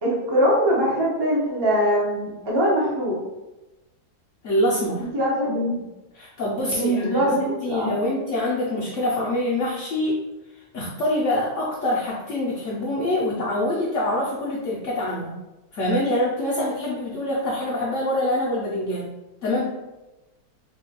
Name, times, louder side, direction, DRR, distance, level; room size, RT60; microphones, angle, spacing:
voice 1, 0.0-3.2 5.0-5.8 6.7-8.0, equal, 35° right, -5 dB, 0.4 m, -22 dB
voice 2, 4.4-5.1 6.1-10.2 10.7-15.4 15.7-19.1 19.4-19.7, left 1 dB, 70° left, -5 dB, 0.7 m, -25 dB
3.5 x 2.2 x 2.8 m, 1.0 s
omnidirectional pair, 1.7 m